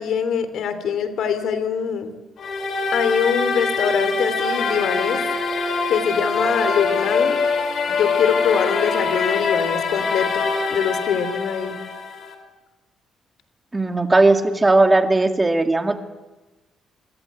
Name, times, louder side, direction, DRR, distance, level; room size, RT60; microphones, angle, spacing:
voice 1, 0.0-2.1 2.9-5.2 5.9-7.4 7.9-11.8, left 7 dB, 70° left, 11 dB, 3.1 m, -23 dB
sound 1, 2.4-12.3, left 4 dB, 55° left, 4.7 m, -23 dB
voice 2, 13.7-16.0, right 2 dB, 15° right, 6 dB, 2.3 m, -17 dB
28.0 x 25.0 x 8.4 m, 1.1 s
cardioid pair, 130°, 0 cm